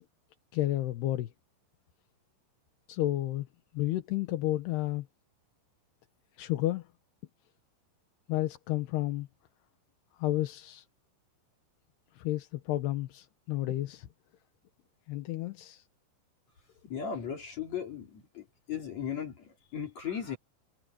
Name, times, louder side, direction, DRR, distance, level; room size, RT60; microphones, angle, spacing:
voice 1, 0.5-1.3 2.9-3.5 3.7-5.1 6.4-6.8 8.3-9.3 10.2-10.8 12.2-14.1 15.1-15.8, left 15 dB, 70° left, 2.8 m, -31 dB
voice 2, 16.9-20.4, left 8 dB, 40° left, 3.9 m, -37 dB
omnidirectional pair, 5.8 m